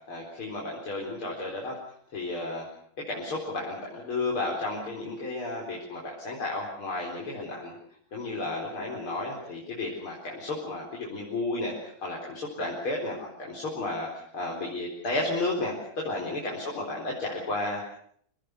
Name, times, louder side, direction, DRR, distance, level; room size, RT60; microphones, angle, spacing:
voice 1, 0.1-1.8 2.1-2.7 3.1-7.7 8.1-17.8, left 2 dB, 85° left, -2 dB, 5.3 m, -33 dB
26.5 x 18.5 x 8.1 m, 0.64 s
omnidirectional pair, 2.3 m